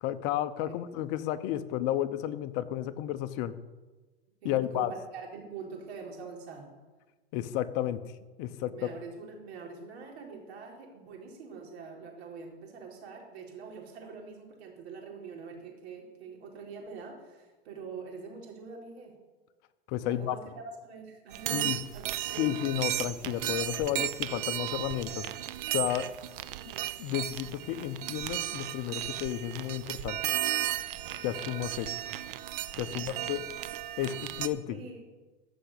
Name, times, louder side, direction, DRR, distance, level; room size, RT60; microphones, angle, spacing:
voice 1, 0.0-3.5 4.4-4.9 7.3-8.0 8.4-8.9 19.9-20.4 21.5-21.8 22.4-25.3 25.7-26.1 27.0-30.2 31.2-31.9 32.8-33.4 34.0-34.8, left 12 dB, 40° left, 11 dB, 0.9 m, -32 dB
voice 2, 4.4-6.7 8.7-19.1 20.1-21.8 22.3-22.6 32.9-33.3 34.7-35.0, right 5 dB, 65° right, 0 dB, 4.1 m, -44 dB
sound 1, 21.3-34.5, right 14 dB, 50° right, 0.8 m, -35 dB
14.5 x 6.1 x 8.5 m, 1.2 s
hypercardioid pair, 135°, 34 cm